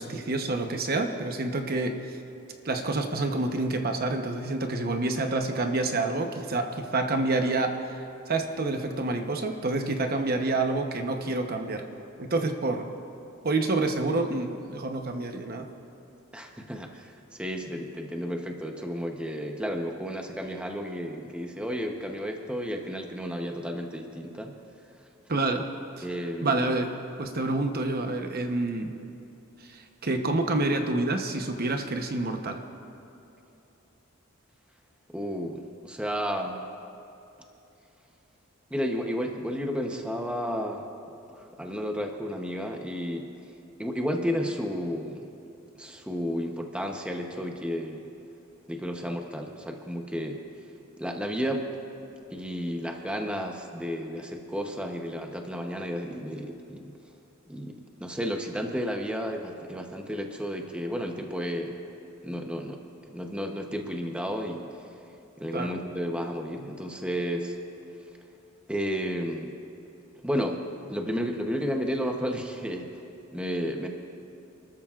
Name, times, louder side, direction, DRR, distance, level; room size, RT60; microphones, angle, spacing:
voice 1, 0.0-2.2 2.6-8.0 8.3-11.8 12.2-12.8 13.4-15.7 25.3-25.6 26.0-26.1 26.4-28.9 29.6-32.6 65.5-65.7, right 2 dB, 45° right, 5 dB, 0.9 m, -28 dB
voice 2, 16.3-17.1 17.4-24.5 26.0-26.7 35.1-36.6 38.7-40.8 41.3-43.3 43.8-45.3 45.8-48.1 48.7-50.4 51.0-51.7 52.3-56.9 57.5-61.8 62.2-64.7 65.4-67.6 68.7-69.5 70.2-70.6 70.9-72.9 73.3-73.9, equal, 5° right, 2 dB, 0.8 m, -32 dB
29.0 x 13.5 x 2.4 m, 2.8 s
head